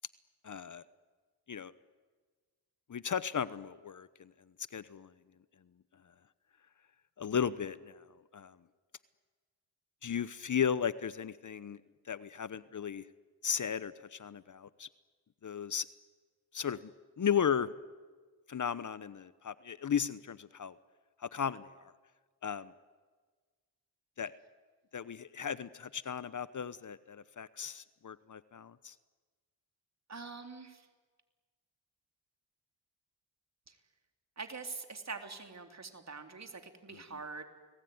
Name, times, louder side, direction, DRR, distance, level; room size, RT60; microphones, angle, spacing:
voice 1, 0.4-0.8 1.5-1.7 2.9-4.3 4.7-5.1 7.2-8.0 8.3-8.6 10.0-11.8 12.1-13.0 13.4-14.9 15.4-15.9 16.5-16.8 17.2-17.7 18.5-20.8 21.2-21.9 22.4-22.7 24.2-24.3 24.9-28.9 36.9-37.0, left 8 dB, 45° left, 16 dB, 1.0 m, -35 dB
voice 2, 30.1-30.9 33.7-33.8 34.4-37.4, right 4 dB, 40° right, 6 dB, 3.7 m, -44 dB
30.0 x 20.0 x 9.6 m, 1.4 s
cardioid pair, 65°, 41 cm